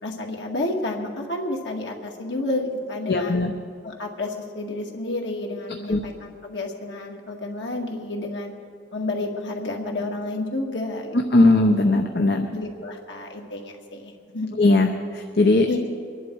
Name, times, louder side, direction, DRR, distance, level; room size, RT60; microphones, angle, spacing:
voice 1, 0.0-3.5 3.8-8.5 8.9-11.2 12.5-14.5 15.6-15.8, left 2 dB, 85° left, 0 dB, 2.0 m, -30 dB
voice 2, 3.1-3.5 5.9-6.0 11.3-12.5 14.6-15.7, left 2 dB, 60° left, 4 dB, 0.8 m, -18 dB
23.5 x 11.0 x 4.7 m, 2.3 s
head